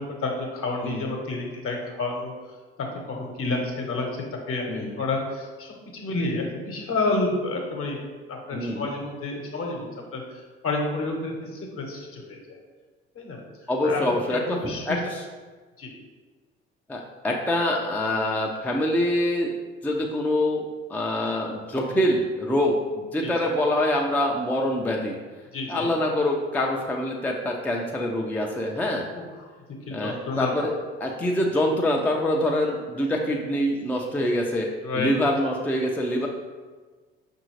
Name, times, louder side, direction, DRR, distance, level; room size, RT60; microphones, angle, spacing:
voice 1, 0.0-2.3 2.8-5.7 6.0-8.0 8.3-10.2 10.6-12.4 13.2-13.4 13.8-15.0 15.8-15.9 23.2-23.3 25.5-25.9 29.1-29.5 29.9-30.5 34.8-35.1, left 3 dB, 50° left, 1 dB, 1.0 m, -30 dB
voice 2, 4.7-5.0 8.5-8.9 13.7-15.2 16.9-19.5 19.8-25.2 25.7-29.1 29.9-30.7 31.0-36.3, left 1 dB, 5° left, 0 dB, 0.4 m, -25 dB
5.4 x 2.6 x 3.1 m, 1.4 s
hypercardioid pair, 60°, 30 cm